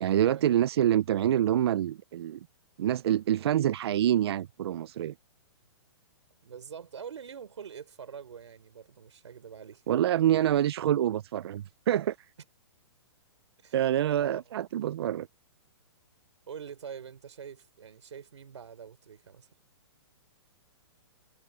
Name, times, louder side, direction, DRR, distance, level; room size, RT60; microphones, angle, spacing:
voice 1, 0.0-2.4 2.8-5.1 9.9-12.2 13.7-15.3, right 11 dB, 60° right, 0.5 m, -26 dB
voice 2, 6.4-9.8 13.6-13.8 14.2-14.4 16.5-19.5, right 7 dB, 85° right, 3.9 m, -44 dB
hypercardioid pair, 150°, 15 cm